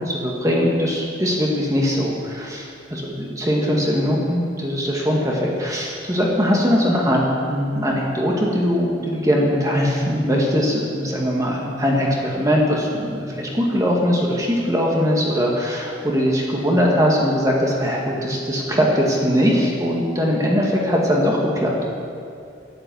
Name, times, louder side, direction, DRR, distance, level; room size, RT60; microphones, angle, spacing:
voice 1, 0.0-7.2 7.5-22.0, equal, 15° right, -2 dB, 1.7 m, -21 dB
10.5 x 9.0 x 8.4 m, 2.4 s
head